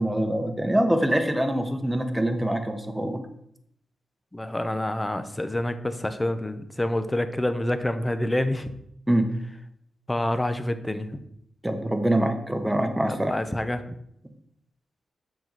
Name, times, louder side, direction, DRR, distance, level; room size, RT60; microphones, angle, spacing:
voice 1, 0.0-3.2 9.1-9.3 11.6-13.3, right 1 dB, 10° right, 6 dB, 1.1 m, -24 dB
voice 2, 4.3-8.7 10.1-11.2 13.1-13.8, left 1 dB, 15° left, 10 dB, 0.8 m, -27 dB
7.6 x 6.1 x 4.1 m, 0.73 s
cardioid pair, 70°, 0 cm